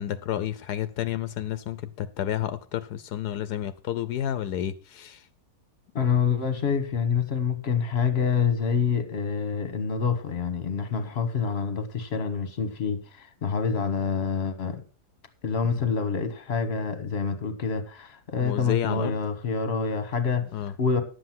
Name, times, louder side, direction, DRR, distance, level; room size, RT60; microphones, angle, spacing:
voice 1, 0.0-5.3 15.6-15.8 18.4-19.2 20.5-20.7, left 11 dB, 80° left, 1.2 m, -30 dB
voice 2, 5.9-14.8 15.4-20.5 20.8-21.0, left 6 dB, 40° left, 1.5 m, -27 dB
11.0 x 7.7 x 5.8 m
omnidirectional pair, 1.7 m